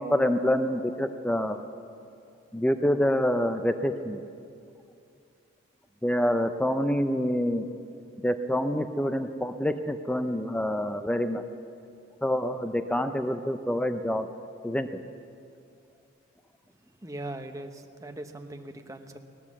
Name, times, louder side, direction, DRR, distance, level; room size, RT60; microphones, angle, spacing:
voice 1, 0.0-1.6 2.5-4.2 6.0-7.7 8.2-11.4 12.2-14.3 14.6-14.9, equal, 5° left, 8 dB, 0.5 m, -26 dB
voice 2, 17.0-19.2, right 1 dB, 15° right, 5 dB, 0.8 m, -40 dB
19.0 x 10.0 x 7.3 m, 2.5 s
head